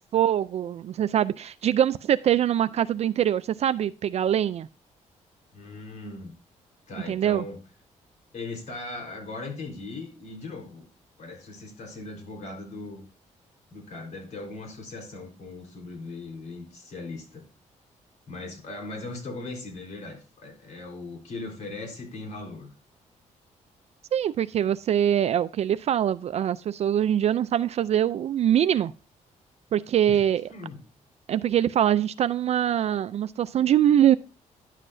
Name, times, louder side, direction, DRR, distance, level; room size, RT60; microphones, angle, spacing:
voice 1, 0.1-4.7 7.1-7.4 24.1-28.9 29.7-30.5 31.3-34.2, right 10 dB, 55° right, 0.4 m, -23 dB
voice 2, 5.5-6.3 6.9-7.6 8.3-10.9 11.2-13.0 13.7-17.5 18.3-22.7 30.1-30.2 30.5-30.8, left 2 dB, 65° left, 3.9 m, -39 dB
11.0 x 7.4 x 2.6 m
cardioid pair, 110°, 13 cm